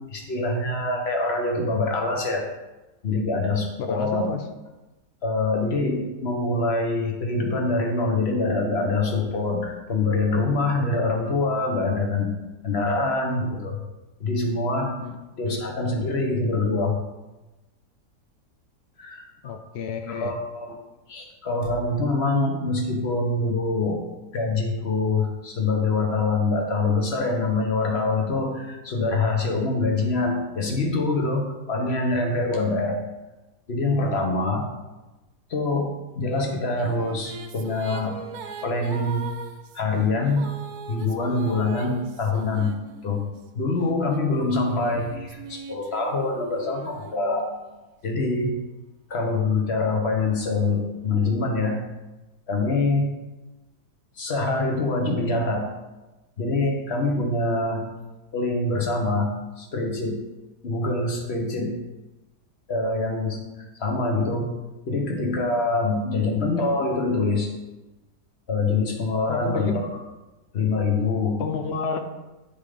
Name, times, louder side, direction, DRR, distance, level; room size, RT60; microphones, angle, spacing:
voice 1, 0.1-2.4 3.0-4.3 5.2-12.3 12.6-13.8 14.2-14.9 15.4-17.0 19.0-19.3 20.1-20.7 21.1-24.0 24.3-33.0 33.7-34.7 35.5-35.9 36.2-38.2 38.6-39.3 39.7-40.4 40.9-42.7 43.0-43.2 43.5-47.5 48.0-48.5 49.1-51.8 52.5-53.1 54.2-55.7 56.4-57.8 58.3-59.3 59.6-60.2 60.6-61.7 62.7-63.4 63.8-64.5 64.8-67.5 68.5-69.9 70.5-71.4, left 3 dB, 40° left, 2 dB, 1.3 m, -24 dB
voice 2, 3.8-4.4 15.0-15.2 15.5-15.6 19.4-20.3 44.4-45.0 69.3-69.8 71.4-72.0, left 5 dB, 75° left, 6 dB, 0.5 m, -31 dB
sound 1, 36.4-43.4 44.1-47.8, right 6 dB, 70° right, 1.1 m, -41 dB
10.0 x 3.6 x 5.0 m, 1.1 s
omnidirectional pair, 1.8 m